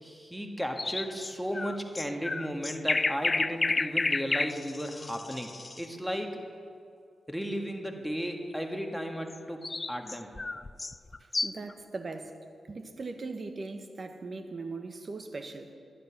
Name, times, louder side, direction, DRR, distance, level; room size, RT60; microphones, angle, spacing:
voice 1, 0.0-6.4 7.3-9.6 9.9-10.3, equal, ahead, 3 dB, 1.5 m, -35 dB
sound 1, 0.8-5.9 9.3-11.7, left 3 dB, 35° left, 0.3 m, -31 dB
voice 2, 11.2-12.3 12.7-15.7, right 3 dB, 45° right, 7 dB, 1.1 m, -39 dB
11.0 x 10.5 x 5.8 m, 2.3 s
cardioid pair, 60°, 0 cm